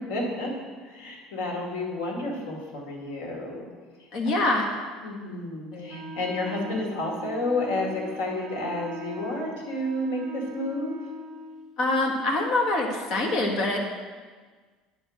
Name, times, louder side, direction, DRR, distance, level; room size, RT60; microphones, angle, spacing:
voice 1, 0.1-0.5 0.8-3.7 5.0-11.0, left 1 dB, 90° left, -1 dB, 2.2 m, -30 dB
voice 2, 4.1-4.7 5.7-6.0 11.8-13.8, left 2 dB, 45° left, 1 dB, 1.4 m, -25 dB
Wind instrument woodwind instrument, 5.9-11.7, equal, 40° right, 1.0 m, -42 dB
9.7 x 4.6 x 6.3 m, 1.5 s
cardioid pair, 155°, 0 cm